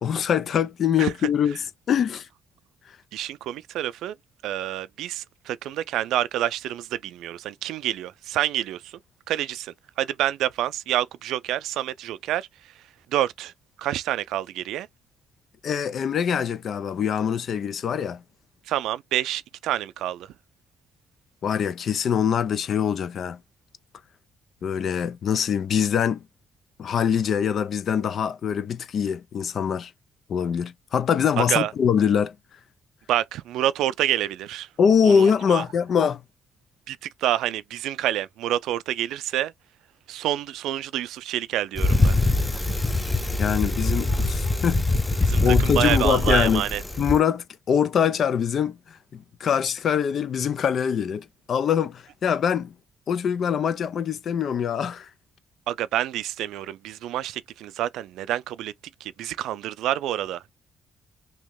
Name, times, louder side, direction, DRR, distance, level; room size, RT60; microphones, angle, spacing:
voice 1, 0.0-1.6 1.9-2.3 15.6-18.2 21.4-23.4 24.6-26.2 26.8-29.9 30.3-32.3 34.8-36.2 43.4-44.9 45.4-46.6 47.0-52.7 53.1-55.1, left 7 dB, 60° left, 0.5 m, -23 dB
voice 2, 3.1-4.1 4.4-9.0 9.3-12.5 13.1-13.5 13.8-14.9 18.7-20.3 31.4-31.7 33.1-34.7 35.0-35.6 36.9-39.5 40.1-42.1 45.2-46.8 55.7-58.7 59.0-60.5, right 13 dB, 85° right, 0.3 m, -28 dB
Bicycle, 41.8-47.2, left 2 dB, 15° left, 0.7 m, -23 dB
3.0 x 2.8 x 3.7 m
cardioid pair, 90°, 0 cm